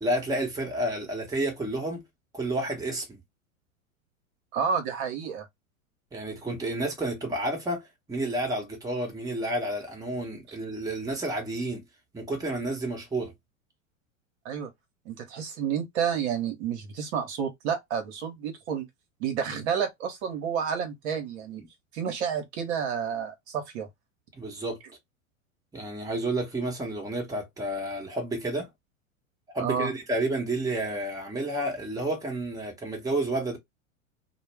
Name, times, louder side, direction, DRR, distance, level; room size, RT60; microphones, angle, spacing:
voice 1, 0.0-2.0 2.3-3.2 6.1-11.8 12.1-13.3 24.3-24.8 25.7-28.7 29.5-33.6, right 1 dB, 10° right, 0.9 m, -30 dB
voice 2, 4.5-5.5 10.5-10.6 14.4-14.7 15.1-18.9 19.2-21.6 21.9-23.9 29.6-29.9, right 7 dB, 55° right, 0.9 m, -30 dB
2.3 x 2.0 x 3.3 m
hypercardioid pair, 95°, 40 cm